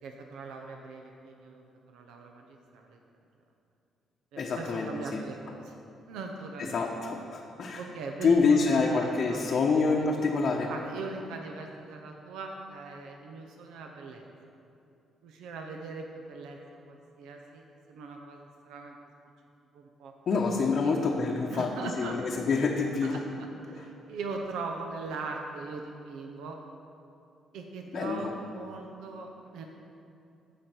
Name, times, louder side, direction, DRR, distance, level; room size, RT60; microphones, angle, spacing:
voice 1, 0.0-1.6 1.9-3.0 4.3-5.8 6.1-7.0 7.8-9.7 9.9-10.1 10.7-14.3 15.2-16.6 16.9-19.0 19.7-20.1 20.8-21.0 21.5-22.2 23.1-26.6 27.5-29.6, right 3 dB, 90° right, 2 dB, 0.7 m, -40 dB
voice 2, 4.4-5.2 6.6-7.8 8.2-10.7 20.3-21.7 22.0-23.2 23.7-23.8 27.9-28.3, left 4 dB, 55° left, -2 dB, 0.8 m, -27 dB
14.5 x 5.1 x 4.4 m, 2.7 s
cardioid pair, 90°, 0 cm